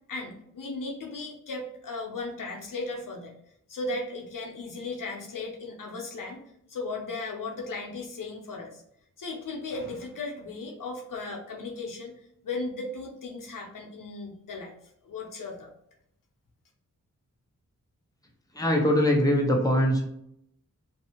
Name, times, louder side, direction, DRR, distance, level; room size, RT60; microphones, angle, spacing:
voice 1, 0.1-3.3 3.7-6.4 6.7-8.8 9.2-12.1 12.4-14.7 15.0-15.7, left 3 dB, 75° left, 0 dB, 0.8 m, -36 dB
voice 2, 18.6-20.1, equal, 10° left, 0 dB, 0.8 m, -22 dB
2.7 x 2.7 x 2.8 m, 0.75 s
cardioid pair, 55°, 33 cm